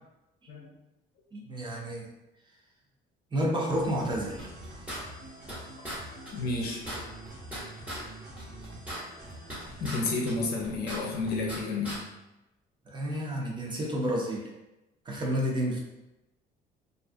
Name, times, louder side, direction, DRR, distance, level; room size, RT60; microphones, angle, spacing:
voice 1, 1.3-2.1 3.3-4.5 12.9-14.5 15.1-15.8, equal, 25° right, -2 dB, 0.6 m, -30 dB
sound 1, 3.7-9.9, right 1 dB, 55° right, 1.0 m, -46 dB
sound 2, 4.4-5.6 5.8-6.0 6.3-6.4 6.6-8.0 8.4-10.0 10.3-11.6 11.8-12.0, equal, 10° right, 1.1 m, -39 dB
voice 2, 6.3-6.8 9.8-12.1, left 3 dB, 70° left, -1 dB, 0.7 m, -31 dB
2.5 x 2.3 x 2.5 m, 0.96 s
cardioid pair, 110°, 17 cm